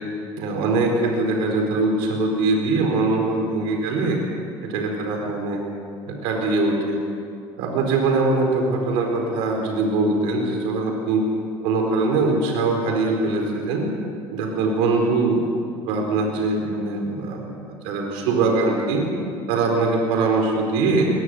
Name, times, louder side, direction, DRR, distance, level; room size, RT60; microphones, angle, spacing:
voice 1, 0.4-4.2 4.6-5.6 6.1-7.0 7.6-11.2 11.6-13.9 14.3-15.4 15.8-19.0 19.5-21.1, right 3 dB, 85° right, 1 dB, 4.4 m, -22 dB
22.0 x 20.0 x 7.9 m, 2.5 s
cardioid pair, 125°, 9 cm